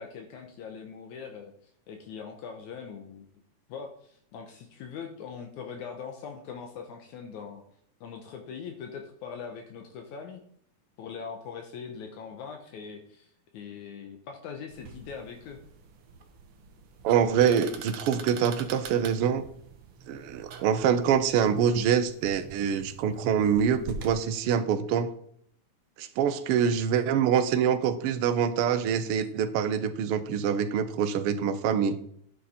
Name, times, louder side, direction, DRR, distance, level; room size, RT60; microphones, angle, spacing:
voice 1, 0.0-1.5 1.9-3.3 3.7-7.6 8.0-10.4 11.0-15.6, left 6 dB, 75° left, 4 dB, 2.3 m, -41 dB
sound 1, 14.7-24.2, right 5 dB, 60° right, 1.7 m, -45 dB
voice 2, 17.0-19.4 20.1-25.1 26.0-32.0, right 8 dB, 80° right, 9 dB, 1.3 m, -25 dB
11.0 x 6.6 x 4.2 m, 0.65 s
omnidirectional pair, 3.5 m